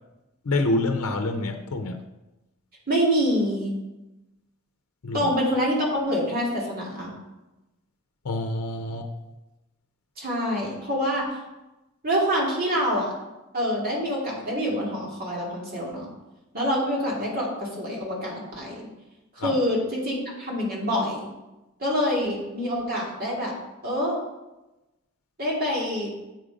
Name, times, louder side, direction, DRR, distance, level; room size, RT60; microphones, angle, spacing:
voice 1, 0.4-2.0 5.0-5.3 8.2-9.1 19.4-19.6, left 2 dB, 85° left, 5 dB, 0.6 m, -27 dB
voice 2, 2.9-3.7 5.1-7.1 10.2-11.4 12.0-13.1 13.5-16.1 16.5-18.9 19.4-21.3 21.8-23.5 23.8-24.2 25.4-26.1, equal, 45° right, -4 dB, 2.2 m, -26 dB
7.7 x 5.1 x 5.0 m, 1.0 s
head